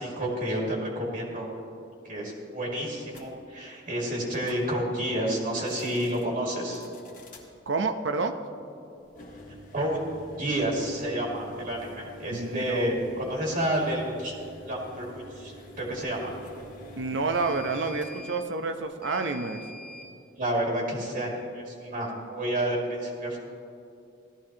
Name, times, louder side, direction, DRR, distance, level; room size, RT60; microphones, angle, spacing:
voice 1, 0.0-1.5 2.0-6.8 9.7-10.0 10.4-14.3 14.7-16.4 20.4-23.4, right 1 dB, 50° right, -2 dB, 2.0 m, -30 dB
sound 1, 3.1-3.3 4.3-4.7 5.6-6.3 6.7-7.5 9.1-20.1, equal, 45° left, 1.7 m, -47 dB
voice 2, 7.7-8.3 12.3-12.9 17.0-19.6, right 3 dB, 85° right, 7 dB, 0.8 m, -29 dB
17.0 x 13.0 x 2.9 m, 2.5 s
head